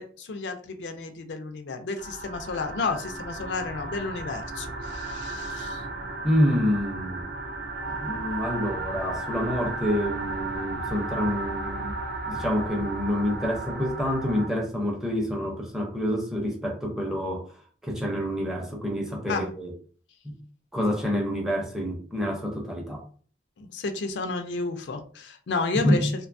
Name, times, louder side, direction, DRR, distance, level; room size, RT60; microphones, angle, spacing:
voice 1, 0.0-5.8 19.3-19.5 23.6-26.3, left 3 dB, 90° left, 0.4 m, -32 dB
sound 1, 2.0-14.5, right 2 dB, 60° right, 0.4 m, -34 dB
voice 2, 6.2-7.3 7.9-12.0 12.3-17.5 17.8-19.7 20.2-20.4 20.7-23.0 25.8-26.1, equal, 5° right, 0.5 m, -27 dB
2.5 x 2.2 x 2.5 m
head